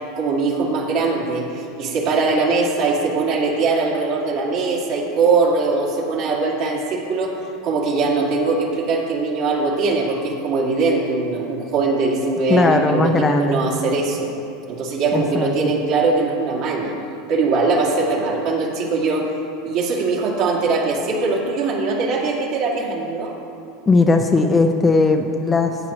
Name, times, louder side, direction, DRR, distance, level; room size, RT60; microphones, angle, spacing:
voice 1, 0.2-14.3 14.7-16.9 17.3-19.3 19.6-23.3, right 3 dB, 55° right, -2 dB, 2.4 m, -21 dB
voice 2, 12.5-13.6 15.1-15.5 23.9-25.8, left 3 dB, 20° left, 4 dB, 0.7 m, -17 dB
14.5 x 8.8 x 3.0 m, 2.7 s
hypercardioid pair, 100°, 0 cm